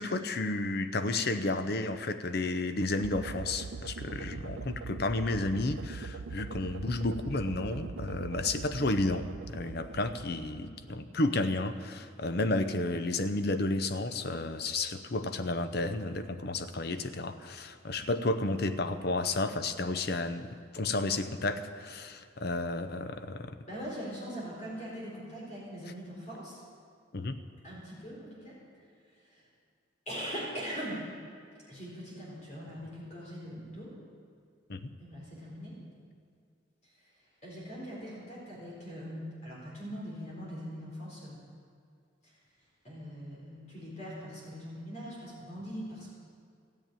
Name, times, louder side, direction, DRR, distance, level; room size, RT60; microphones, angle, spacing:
voice 1, 0.0-20.5 20.7-23.6 27.1-27.4 34.7-34.9, left 2 dB, 55° left, 10 dB, 0.7 m, -32 dB
sound 1, 3.0-11.2, right 4 dB, 80° right, 0.5 m, -42 dB
voice 2, 23.6-26.6 27.6-28.6 29.3-29.4 30.1-31.1 31.7-33.9 35.0-35.8 37.4-41.4 42.8-46.1, equal, 35° left, -5 dB, 4.2 m, -41 dB
14.0 x 8.5 x 9.0 m, 2.2 s
head